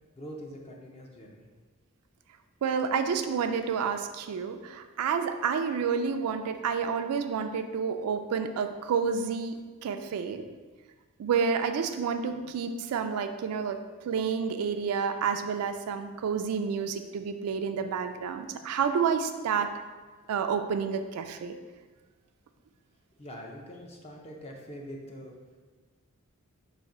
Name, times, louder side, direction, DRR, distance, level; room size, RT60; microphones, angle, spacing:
voice 1, 0.1-1.5 23.2-25.3, equal, 30° left, 0 dB, 0.5 m, -44 dB
voice 2, 2.6-9.5 9.8-10.4 11.2-19.7 20.3-21.6, right 6 dB, 85° right, 7 dB, 0.3 m, -29 dB
4.1 x 2.6 x 4.8 m, 1.4 s
head